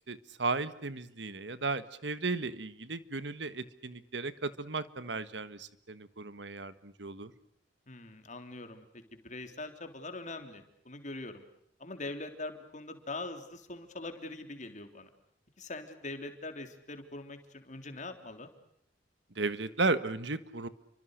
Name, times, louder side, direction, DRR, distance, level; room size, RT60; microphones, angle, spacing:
voice 1, 0.1-7.3 19.3-20.7, right 3 dB, 75° right, 14 dB, 1.5 m, -35 dB
voice 2, 7.9-8.9 9.1-11.4 11.8-15.1 15.6-18.5, left 2 dB, 45° left, 7 dB, 3.6 m, -42 dB
30.0 x 24.5 x 6.6 m, 0.74 s
head